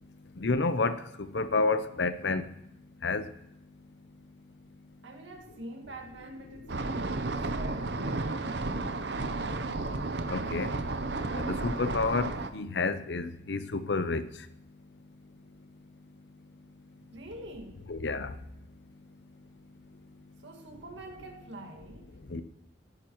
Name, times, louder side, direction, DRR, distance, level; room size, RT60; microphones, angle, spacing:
voice 1, 0.4-2.4 3.0-3.2 10.3-10.7 11.3-14.2 17.9-18.3 22.3-22.4, left 3 dB, 65° left, 0.7 m, -29 dB
voice 2, 5.0-9.0 17.1-17.9 18.2-18.3 20.3-22.2, right 1 dB, 85° right, 2.0 m, -45 dB
sound 1, 6.7-12.5, right 3 dB, 65° right, 0.8 m, -33 dB
15.5 x 11.5 x 3.1 m
head